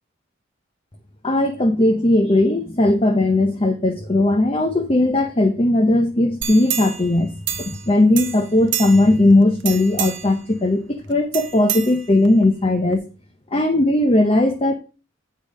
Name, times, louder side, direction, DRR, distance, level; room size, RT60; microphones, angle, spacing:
voice 1, 1.2-7.3 7.6-13.0 13.5-14.7, left 2 dB, 30° left, 6 dB, 0.9 m, -18 dB
sound 1, 6.4-7.9 8.2-9.2 9.6-10.4 11.3-12.4 12.9-13.0, right 10 dB, 65° right, 0.8 m, -28 dB
8.7 x 5.6 x 5.1 m, 0.32 s
head